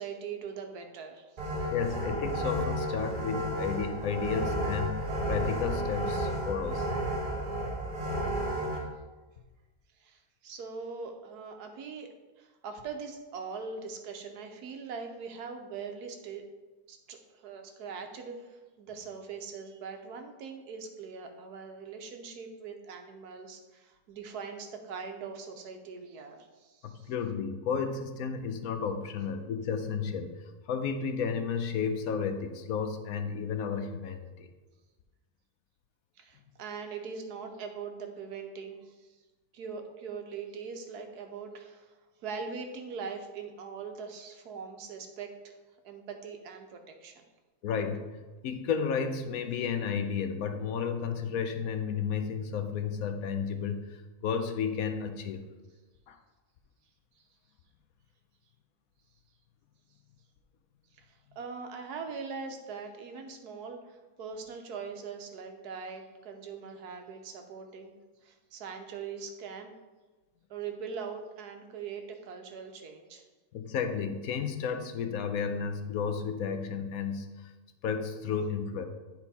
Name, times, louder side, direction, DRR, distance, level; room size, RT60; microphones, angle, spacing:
voice 1, 0.0-1.5 8.1-8.8 10.0-12.1 12.4-16.4 16.9-27.1 36.2-39.1 39.5-41.9 42.2-45.5 45.8-47.3 57.2-57.3 61.0-68.0 68.2-69.7 70.5-73.2, right 5 dB, 85° right, 5 dB, 1.4 m, -42 dB
sound 1, 1.4-8.8, right 1 dB, 35° right, 1.4 m, -32 dB
voice 2, 1.7-6.9 26.8-30.3 30.7-34.5 47.6-55.4 56.1-56.2 73.5-77.5 77.8-78.8, left 6 dB, 70° left, 7 dB, 1.1 m, -32 dB
9.6 x 4.4 x 4.2 m, 1.2 s
omnidirectional pair, 1.6 m